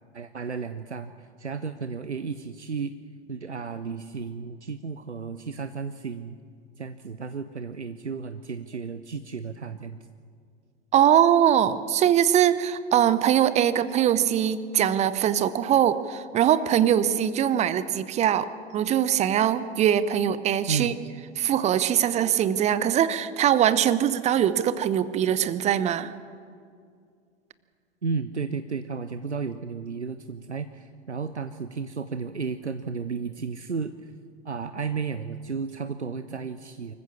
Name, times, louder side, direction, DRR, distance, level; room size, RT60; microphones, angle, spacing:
voice 1, 0.1-2.9 3.3-6.4 6.8-10.1 20.7-21.0 28.0-34.1 34.4-36.9, right 5 dB, 85° right, 10 dB, 0.8 m, -33 dB
voice 2, 10.9-18.5 18.7-20.9 21.4-26.1, right 10 dB, 20° right, 15 dB, 0.7 m, -22 dB
24.5 x 15.0 x 7.2 m, 2.2 s
figure-of-eight pair, 95°, 34 cm